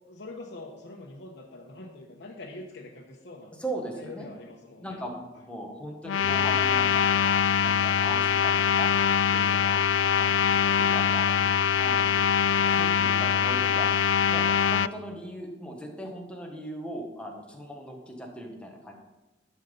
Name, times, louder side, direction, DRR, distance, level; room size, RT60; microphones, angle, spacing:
voice 1, 0.1-3.5 3.9-5.0 5.3-5.4, left 2 dB, 65° left, -1 dB, 1.1 m, -44 dB
voice 2, 3.6-4.3 4.8-8.9 9.3-9.8 10.2-12.2 12.5-13.9 14.3-19.0, right 1 dB, 5° left, 1 dB, 1.4 m, -39 dB
sound 1, 6.1-14.9, left 7 dB, 85° left, 0.3 m, -23 dB
11.5 x 5.6 x 5.4 m, 1.1 s
head